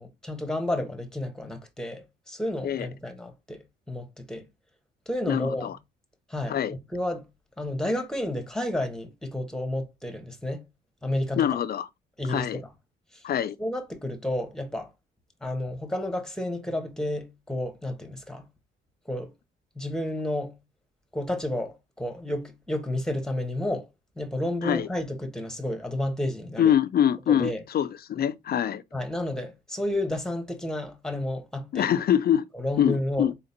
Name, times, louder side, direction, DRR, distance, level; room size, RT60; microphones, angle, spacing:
voice 1, 0.0-4.5 5.1-5.8 6.3-7.3 7.6-10.7 11.0-11.5 12.2-12.7 13.6-14.9 15.4-18.5 19.1-19.3 19.7-20.6 21.1-23.9 24.2-26.7 27.3-27.6 28.9-31.9 32.5-33.3, left 1 dB, 5° left, 1.3 m, -31 dB
voice 2, 5.3-5.8 6.5-6.7 11.4-11.9 12.3-12.6 13.2-13.6 24.6-24.9 26.6-28.8 31.7-32.4 32.8-33.3, left 9 dB, 50° left, 0.5 m, -24 dB
4.2 x 3.8 x 2.8 m
cardioid pair, 90°, 20 cm